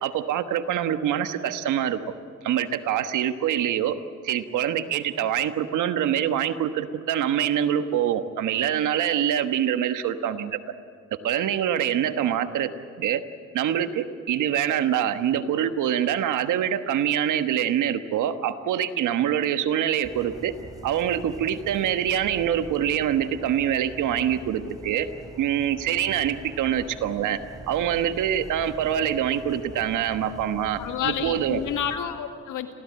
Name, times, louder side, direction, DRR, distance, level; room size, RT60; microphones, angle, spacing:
voice 1, 0.0-2.0 2.4-4.0 4.2-10.6 11.2-12.7 13.0-13.2 13.5-20.5 20.8-25.1 25.4-27.4 27.7-31.6, right 10 dB, 80° right, 9 dB, 1.4 m, -25 dB
sound 1, 20.0-32.0, right 1 dB, 10° right, 3.5 m, -44 dB
voice 2, 30.8-32.7, left 9 dB, 85° left, 6 dB, 2.1 m, -29 dB
27.0 x 16.5 x 8.8 m, 2.1 s
cardioid pair, 90°, 30 cm